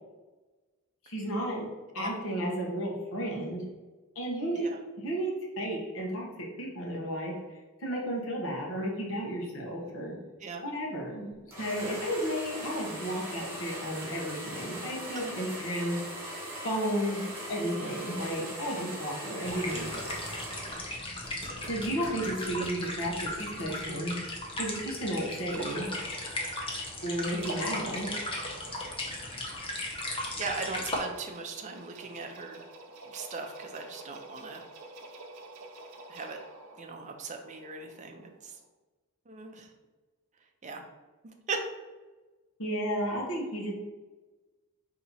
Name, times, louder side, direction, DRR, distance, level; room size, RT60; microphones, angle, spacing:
voice 1, 1.0-1.7 1.9-3.6 4.1-4.7 5.0-7.3 7.8-10.2 10.6-16.0 16.6-20.1 21.7-24.1 24.6-25.9 27.0-28.1 42.6-43.7, equal, 60° left, -2 dB, 1.1 m, -33 dB
sound 1, 11.5-20.9 21.2-23.7, right 1 dB, 10° right, 1.2 m, -40 dB
sound 2, 19.5-31.0, left 1 dB, 25° left, 0.7 m, -37 dB
sound 3, 24.2-38.7, right 3 dB, 80° right, 0.6 m, -48 dB
voice 2, 30.4-32.6 33.0-34.6 36.1-36.4 36.8-38.6 39.3-39.7 40.6-40.8 41.5-41.6, right 4 dB, 35° right, 3 dB, 0.5 m, -39 dB
4.2 x 2.9 x 4.1 m, 1.2 s
head